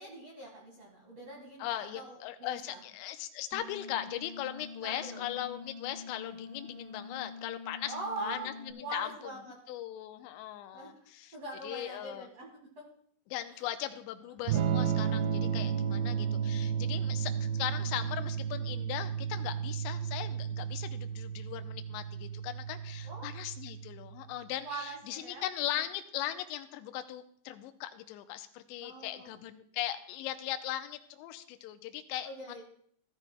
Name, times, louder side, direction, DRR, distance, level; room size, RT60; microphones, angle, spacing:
voice 1, 0.0-2.8 4.8-5.3 7.9-8.5 8.8-9.5 10.7-11.0 11.3-12.5 12.7-12.8 23.0-23.3 24.6-25.4 28.8-29.3 32.2-32.6, right 2 dB, 55° right, -2 dB, 1.8 m, -42 dB
voice 2, 1.6-9.1 9.7-11.4 11.6-12.3 13.3-32.3, left 12 dB, 85° left, 8 dB, 2.7 m, -39 dB
sound 1, 3.5-8.7, left 5 dB, 5° right, 1.0 m, -46 dB
Electric guitar / Strum, 14.5-24.2, right 8 dB, 75° right, 2.7 m, -33 dB
16.5 x 12.5 x 2.2 m, 0.62 s
omnidirectional pair, 5.6 m